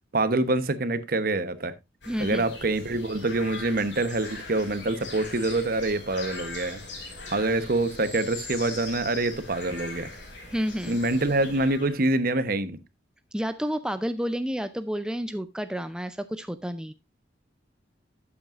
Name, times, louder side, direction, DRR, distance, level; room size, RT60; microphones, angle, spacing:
voice 1, 0.1-1.8 2.2-6.8 7.3-10.1 10.8-12.8, right 2 dB, 55° right, 1.0 m, -26 dB
sound 1, 2.0-12.0, left 3 dB, 80° left, 4.7 m, -40 dB
voice 2, 2.1-2.4 10.5-11.0 13.3-16.9, equal, 5° right, 0.4 m, -30 dB
12.0 x 8.6 x 2.5 m
head